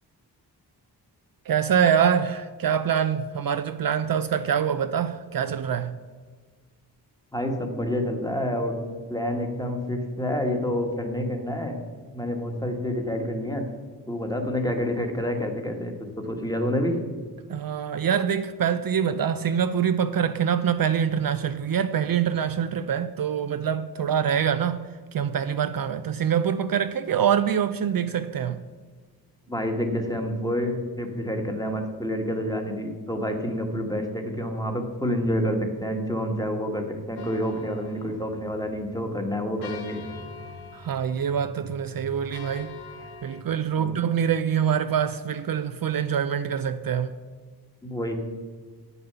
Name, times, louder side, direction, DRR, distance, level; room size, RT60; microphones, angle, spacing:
voice 1, 1.5-5.9 17.5-28.6 40.7-42.8 43.2-47.2, right 8 dB, 60° right, 0.5 m, -25 dB
voice 2, 7.3-8.7 9.1-11.8 12.1-13.6 14.1-17.0 29.5-40.0 43.7-43.9 47.8-48.1, equal, 10° left, 1.5 m, -28 dB
sound 1, 37.2-43.4, left 3 dB, 75° left, 1.1 m, -43 dB
8.7 x 6.9 x 6.8 m
wide cardioid pair, 85°, 40 cm